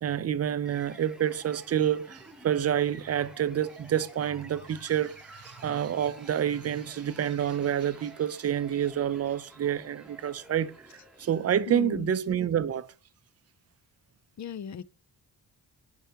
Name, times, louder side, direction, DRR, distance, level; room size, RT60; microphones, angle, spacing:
voice 1, 0.0-10.7 11.2-12.9, right 9 dB, 40° right, 0.5 m, -28 dB
sound 1, 0.6-11.8, right 1 dB, ahead, 1.0 m, -52 dB
voice 2, 11.7-12.1 14.4-14.8, left 7 dB, 45° left, 0.5 m, -37 dB
9.0 x 4.8 x 2.9 m
cardioid pair, 65°, 40 cm